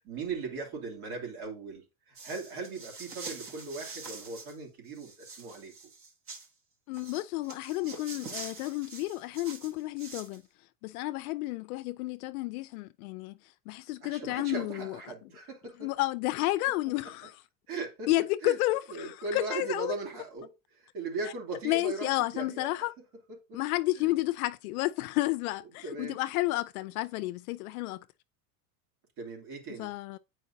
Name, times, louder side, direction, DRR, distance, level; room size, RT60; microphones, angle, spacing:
voice 1, 0.0-5.7 14.0-15.9 17.7-18.1 18.4-18.6 18.9-22.7 23.3-23.6 23.9-24.2 25.8-26.2 29.2-29.9, right 4 dB, 60° right, 2.7 m, -39 dB
sound 1, 2.1-4.5 4.9-6.5 6.9-10.4, right 4 dB, 30° right, 1.1 m, -45 dB
voice 2, 6.9-10.4 10.8-13.4 13.7-15.0 15.8-17.3 18.1-19.9 21.6-22.9 23.5-28.0 29.8-30.2, left 18 dB, 70° left, 0.5 m, -31 dB
8.4 x 4.7 x 2.7 m
supercardioid pair, 140°, 46 cm